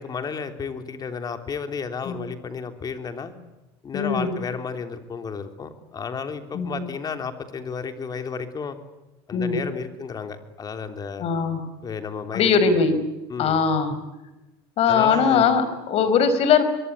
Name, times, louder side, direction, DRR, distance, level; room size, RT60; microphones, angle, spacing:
voice 1, 0.0-3.3 3.8-8.8 9.3-11.3 11.8-12.8 13.3-13.6 14.9-15.5, left 5 dB, 30° left, 8 dB, 3.4 m, -32 dB
voice 2, 3.9-4.3 6.5-6.8 9.3-9.6 11.2-11.6 12.3-13.0 13.4-14.0 14.8-16.6, left 6 dB, 45° left, 12 dB, 4.8 m, -20 dB
24.5 x 22.5 x 9.7 m, 1.0 s
supercardioid pair, 115°, 14 cm